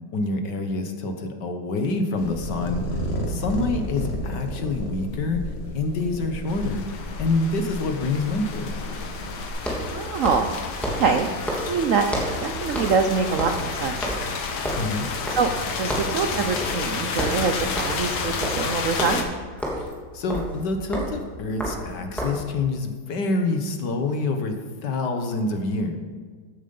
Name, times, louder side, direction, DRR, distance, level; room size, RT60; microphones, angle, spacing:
voice 1, 0.1-2.9 3.3-5.5 5.7-6.9 7.2-8.8 14.8-15.1 19.8-24.5 24.8-26.0, left 3 dB, 60° left, 6 dB, 1.7 m, -27 dB
sound 1, 2.2-9.5, left 1 dB, 35° left, 1.5 m, -32 dB
sound 2, 6.2-6.3 9.5-12.5 12.7-13.1 13.3-15.6 15.9-16.2 16.6-16.8 17.1-22.5, equal, ahead, 2.6 m, -31 dB
sound 3, 6.5-19.2, left 5 dB, 75° left, 2.1 m, -31 dB
voice 2, 9.9-10.5 11.0-11.3 11.7-12.1 12.4-14.2 15.3-19.3, right 5 dB, 85° right, 6 dB, 0.7 m, -24 dB
14.5 x 9.1 x 5.4 m, 1.5 s
omnidirectional pair, 2.3 m